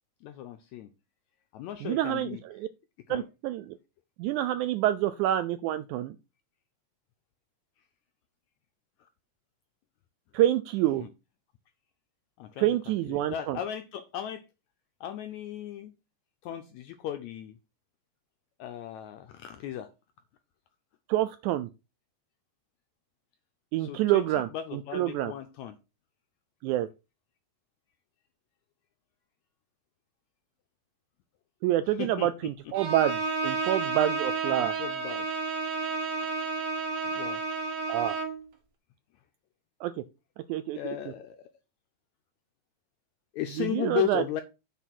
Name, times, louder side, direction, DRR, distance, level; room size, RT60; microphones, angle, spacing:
voice 1, 0.2-0.9 1.5-2.4 3.1-3.3 11.0-11.1 12.4-12.7 13.1-14.4 15.0-15.9 16.4-17.5 18.6-19.9 23.8-24.2 24.5-25.8 32.0-32.3 34.5-35.3 37.0-37.4 40.8-41.5 43.3-44.4, left 11 dB, 85° left, 8 dB, 1.6 m, -36 dB
voice 2, 1.8-2.7 3.1-3.8 4.2-6.2 10.3-11.1 12.6-13.6 21.1-21.7 23.7-25.3 26.6-26.9 31.6-34.7 37.9-38.2 39.8-39.9 40.5-41.0 43.6-44.2, right 13 dB, 85° right, 13 dB, 1.7 m, -27 dB
Bowed string instrument, 32.7-38.4, right 3 dB, 55° right, 1.2 m, -31 dB
8.1 x 3.8 x 6.1 m, 0.28 s
omnidirectional pair, 3.9 m